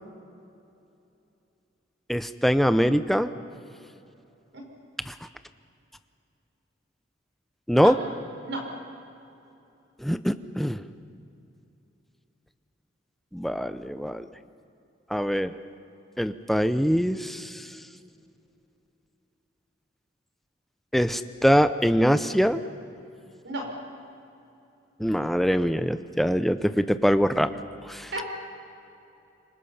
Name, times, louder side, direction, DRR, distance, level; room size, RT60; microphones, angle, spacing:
voice 1, 2.1-3.3 5.1-5.3 7.7-8.0 10.0-10.8 13.3-14.2 15.1-15.5 16.2-17.7 20.9-22.6 25.0-27.6 27.9-28.1, equal, ahead, 10 dB, 0.6 m, -23 dB
voice 2, 4.5-4.6 7.7-8.0 8.4-8.7 23.4-23.7 28.1-28.2, right 1 dB, 75° right, 1 dB, 5.7 m, -33 dB
26.5 x 24.5 x 5.8 m, 2.8 s
head